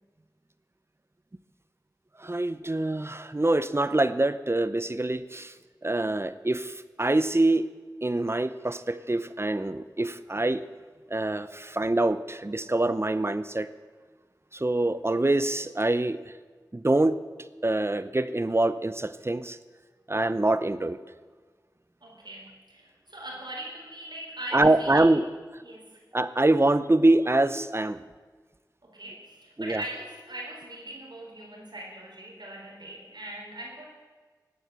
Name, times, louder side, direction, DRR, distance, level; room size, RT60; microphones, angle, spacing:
voice 1, 2.2-5.5 5.8-7.7 8.0-10.6 11.1-13.7 14.5-16.2 16.7-17.2 17.6-19.6 20.1-21.0 24.5-25.2 26.1-28.0 29.6-29.8, right 2 dB, 35° right, 13 dB, 0.7 m, -25 dB
voice 2, 22.0-25.1 25.6-26.0 28.8-33.8, right 1 dB, 75° right, -3 dB, 4.0 m, -41 dB
17.5 x 9.9 x 6.8 m, 1.5 s
wide cardioid pair, 50°, 7 cm